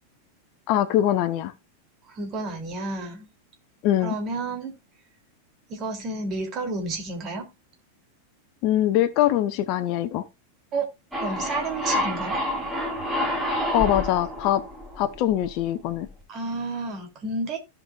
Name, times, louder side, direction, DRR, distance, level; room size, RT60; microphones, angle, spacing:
voice 1, 0.7-1.5 3.8-4.2 8.6-10.2 13.7-14.6 15.0-16.1, left 12 dB, 45° left, 0.8 m, -23 dB
voice 2, 2.1-3.3 4.0-4.7 5.7-7.5 10.7-10.9 11.2-12.4 16.3-17.6, right 2 dB, 30° right, 3.0 m, -31 dB
sound 1, 11.1-15.6, left 1 dB, 5° right, 3.2 m, -28 dB
16.0 x 5.4 x 2.4 m
figure-of-eight pair, 90°, 0 cm